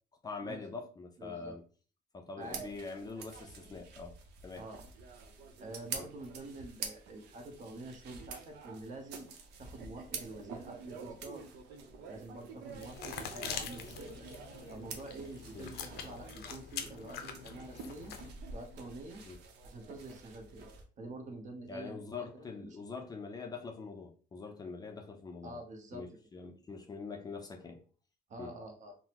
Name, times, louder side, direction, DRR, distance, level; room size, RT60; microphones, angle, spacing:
voice 1, 0.2-1.6 2.1-4.2 4.4-4.7 5.9-6.1 15.5-15.7 19.3-19.4 21.7-25.6 25.9-27.8 28.4-28.5, left 4 dB, 25° left, 0.4 m, -44 dB
voice 2, 1.2-1.6 2.4-2.6 4.6-4.8 5.6-9.3 9.6-11.5 12.1-14.2 14.7-18.1 18.5-19.2 19.6-20.7 21.0-22.0 22.3-22.7 25.4-26.1 28.3-29.0, right 2 dB, 45° right, 0.8 m, -47 dB
sound 1, 2.4-20.8, right 5 dB, 80° right, 0.6 m, -48 dB
sound 2, 12.7-18.3, left 7 dB, 70° left, 0.5 m, -44 dB
3.7 x 2.0 x 2.9 m
cardioid pair, 110°, 17 cm